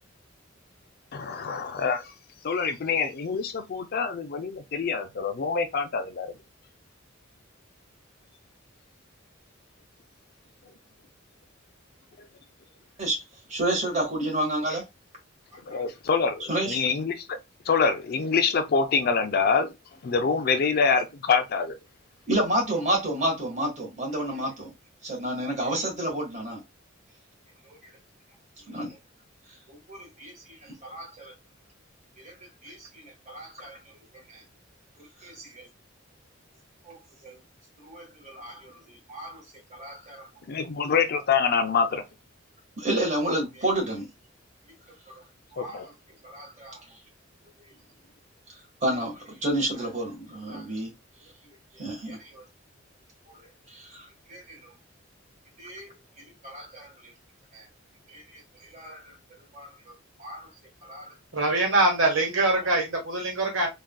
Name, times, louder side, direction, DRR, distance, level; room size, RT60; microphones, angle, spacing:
voice 1, 1.1-2.1 2.4-6.3 12.2-12.3 15.7-17.4 17.7-19.7 20.0-21.7 40.5-42.0 45.6-45.9, left 5 dB, 50° left, 0.4 m, -25 dB
voice 2, 13.5-14.8 15.7-15.8 16.5-16.8 20.4-20.5 22.3-24.7 25.0-26.6 27.7-27.9 28.7-29.0 29.7-31.3 32.2-34.0 34.3-34.4 35.0-35.7 36.8-37.4 37.8-39.4 39.7-40.3 42.8-44.0 45.1-45.2 45.5-45.9 46.2-47.0 48.8-50.9 51.7-52.4 53.3-54.7 55.6-57.1 57.5-57.6 58.1-59.2 59.5-60.5 60.8-61.1, right 1 dB, 35° right, 1.4 m, -31 dB
voice 3, 61.3-63.7, right 2 dB, 75° right, 1.3 m, -23 dB
3.6 x 2.4 x 2.2 m
head